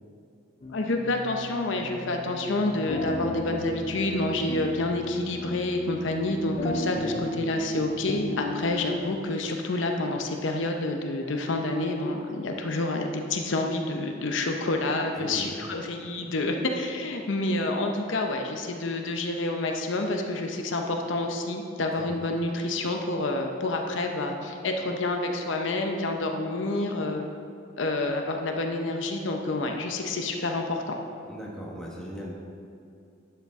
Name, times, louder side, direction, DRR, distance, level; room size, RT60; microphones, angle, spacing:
sound 1, 0.6-9.2, left 1 dB, 30° left, 0.5 m, -35 dB
voice 1, 0.7-27.3 27.8-31.0, left 2 dB, 70° left, 3 dB, 0.7 m, -28 dB
voice 2, 31.3-32.3, equal, 5° left, -4 dB, 1.3 m, -38 dB
11.0 x 6.8 x 3.6 m, 2.4 s
head